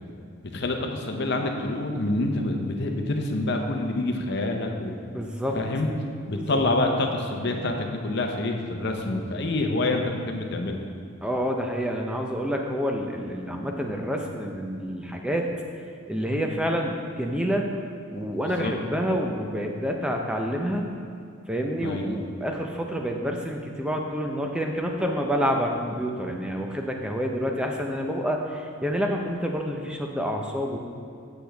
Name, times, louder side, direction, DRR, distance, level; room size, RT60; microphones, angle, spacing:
voice 1, 0.5-5.0 5.5-5.9 6.3-10.8 18.4-18.7 21.8-22.2, left 2 dB, 50° left, 3 dB, 0.7 m, -27 dB
voice 2, 5.0-5.6 6.3-6.6 11.2-15.5 16.1-17.7 18.1-20.9 21.5-30.8, equal, 5° right, 1 dB, 0.5 m, -28 dB
8.4 x 7.9 x 3.4 m, 2.4 s
head